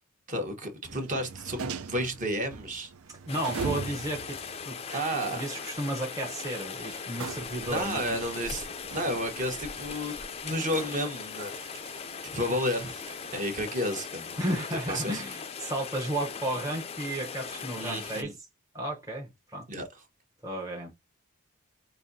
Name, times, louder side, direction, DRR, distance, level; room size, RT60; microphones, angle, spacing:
voice 1, 0.3-2.9 4.9-5.4 7.7-8.7 8.9-11.5 12.2-13.0 13.3-14.4 14.9-15.2 17.7-18.3 19.7-19.9, equal, 35° right, 1.1 m, -32 dB
sound 1, 0.9-13.6, right 5 dB, 75° right, 0.5 m, -43 dB
voice 2, 3.1-4.4 4.6-5.0 5.3-8.2 14.4-18.3 18.7-19.7 20.4-20.9, right 1 dB, 15° right, 0.8 m, -33 dB
Rain, 3.3-18.2, left 6 dB, 25° left, 0.4 m, -39 dB
5.3 x 2.7 x 2.6 m
head